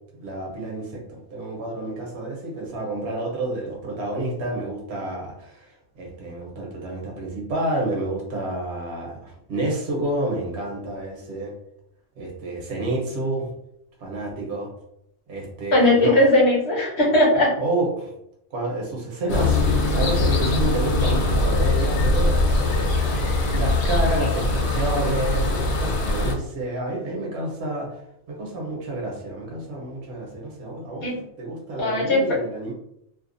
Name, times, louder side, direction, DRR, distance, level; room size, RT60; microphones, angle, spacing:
voice 1, 0.1-11.5 12.2-13.5 14.0-14.7 15.3-16.2 17.6-18.1 18.5-23.1 23.5-31.1 31.4-32.7, right 1 dB, 55° right, -1 dB, 1.0 m, -29 dB
voice 2, 15.7-17.5 31.0-31.2 31.8-32.2, left 1 dB, 55° left, -4 dB, 1.2 m, -18 dB
sound 1, 19.3-26.4, left 2 dB, 80° left, 1.0 m, -22 dB
2.7 x 2.3 x 2.5 m, 0.76 s
omnidirectional pair, 1.5 m